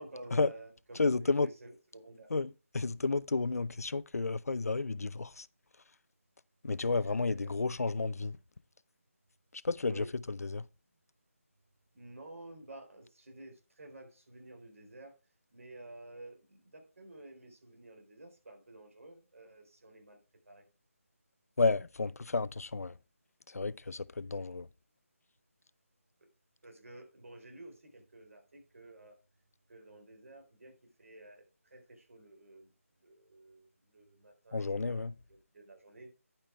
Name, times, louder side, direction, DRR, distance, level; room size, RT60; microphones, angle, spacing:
voice 1, 0.0-2.3 7.0-7.2 7.7-7.8 9.9-10.1 11.9-15.1 15.5-20.2 20.5-20.6 26.6-29.2 29.7-32.7 33.0-36.1, right 2 dB, 65° right, 4.0 m, -52 dB
voice 2, 1.0-1.5 2.3-5.5 6.6-8.4 9.5-10.7 21.6-23.0 23.5-24.7 34.5-35.1, left 3 dB, 85° left, 0.5 m, -32 dB
10.5 x 5.5 x 4.5 m
figure-of-eight pair, 165°, 8 cm